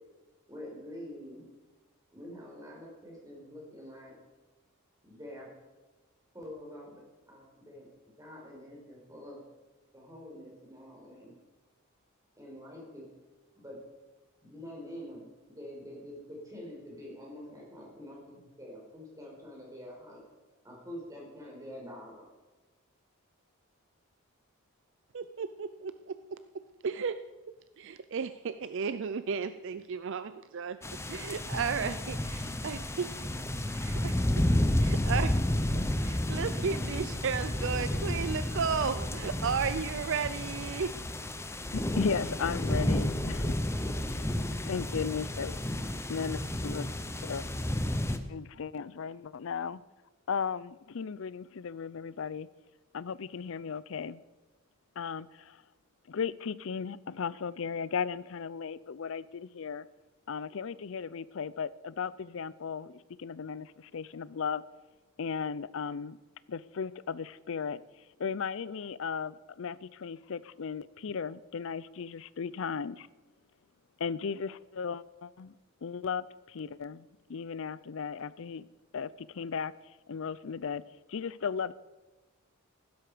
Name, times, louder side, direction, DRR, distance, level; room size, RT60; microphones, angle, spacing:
voice 1, 0.5-1.5 2.1-4.2 5.0-5.5 6.3-7.9 8.2-9.4 9.9-11.3 12.4-13.1 13.5-13.8 14.4-20.2 20.6-22.3, equal, 15° right, -3 dB, 4.9 m, -46 dB
voice 2, 25.1-26.4 26.8-27.2 27.5-30.8 31.1-33.3 33.7-34.3 34.8-35.4 36.0-40.9, right 6 dB, 55° right, 12 dB, 0.5 m, -34 dB
sound 1, 30.8-48.2, left 1 dB, 10° left, 0.8 m, -31 dB
voice 3, 41.7-43.5 44.1-44.3 44.7-45.6 46.1-46.9 47.2-47.8 48.3-49.8 50.3-52.5 52.9-54.2 55.0-55.6 56.1-59.9 60.3-64.6 65.2-66.2 66.5-67.8 68.2-73.1 74.0-75.6 75.8-78.7 78.9-80.8 81.1-81.7, left 6 dB, 60° left, 19 dB, 0.5 m, -36 dB
15.5 x 12.5 x 5.0 m, 1.2 s
head